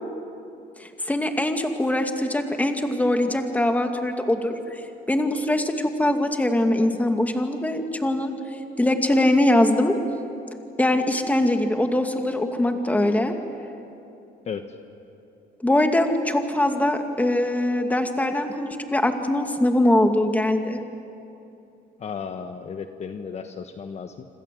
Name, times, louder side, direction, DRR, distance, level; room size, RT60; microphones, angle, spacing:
voice 1, 0.8-4.5 5.1-8.3 8.8-10.0 10.8-13.3 15.6-20.8, left 1 dB, 10° left, 5 dB, 2.4 m, -22 dB
voice 2, 22.0-24.3, left 6 dB, 40° left, 7 dB, 1.3 m, -34 dB
27.0 x 26.5 x 7.7 m, 2.8 s
cardioid pair, 115°, 17 cm